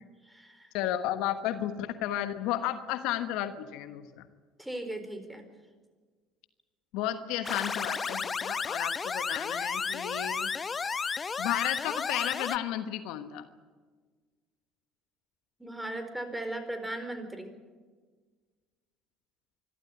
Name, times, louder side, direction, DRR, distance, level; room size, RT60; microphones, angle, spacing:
voice 1, 0.2-0.7 4.6-5.4 15.6-17.5, right 1 dB, 5° right, 7 dB, 4.3 m, -37 dB
voice 2, 0.7-4.3 6.9-10.5 11.4-13.5, left 12 dB, 70° left, 10 dB, 1.2 m, -33 dB
sound 1, 7.4-12.6, left 5 dB, 30° left, 0.7 m, -33 dB
25.0 x 13.0 x 9.7 m, 1.5 s
hypercardioid pair, 65°, 0 cm